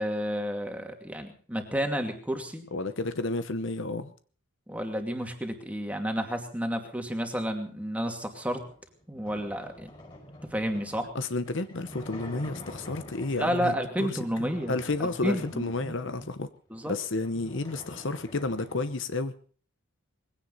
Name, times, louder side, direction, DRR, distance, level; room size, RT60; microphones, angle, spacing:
voice 1, 0.0-2.7 4.7-8.6 9.1-9.9 10.4-11.1 13.3-15.9 16.7-16.9, equal, 5° right, 4 dB, 2.5 m, -31 dB
voice 2, 2.7-4.1 11.1-16.5 16.9-19.3, left 3 dB, 55° left, 11 dB, 0.9 m, -31 dB
sound 1, 8.6-13.7 14.3-16.3 16.8-16.9 17.1-19.0, left 1 dB, 20° left, 5.4 m, -47 dB
21.0 x 16.5 x 4.1 m, 0.43 s
head